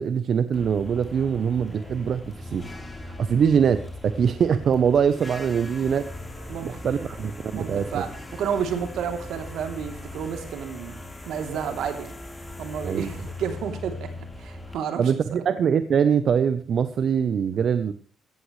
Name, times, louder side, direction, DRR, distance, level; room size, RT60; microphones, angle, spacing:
voice 1, 0.0-2.7 3.0-6.1 6.6-8.0 12.8-13.1 15.0-17.9, right 7 dB, 55° right, 12 dB, 0.9 m, -23 dB
sound 1, 0.5-14.8, left 2 dB, 15° left, 4.1 m, -39 dB
voice 2, 7.5-11.0 11.3-12.1 12.6-14.1 14.4-15.1, right 7 dB, 80° right, 5 dB, 3.2 m, -31 dB
16.5 x 14.5 x 3.3 m, 0.41 s
cardioid pair, 90°, 0 cm